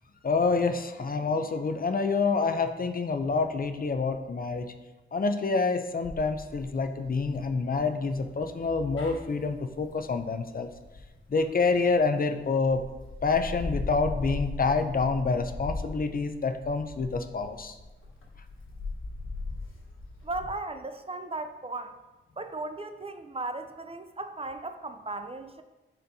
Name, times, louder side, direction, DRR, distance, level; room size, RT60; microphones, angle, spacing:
voice 1, 0.2-4.7 5.1-10.7 11.3-12.8 13.2-17.7, left 4 dB, 45° left, 8 dB, 0.5 m, -27 dB
sound 1, 6.0-12.0 12.5-20.5, left 2 dB, 85° left, 1.3 m, -39 dB
voice 2, 20.2-22.0 22.4-25.6, right 2 dB, 30° right, 8 dB, 0.4 m, -36 dB
10.0 x 4.4 x 2.7 m, 1.1 s
wide cardioid pair, 90°, 20 cm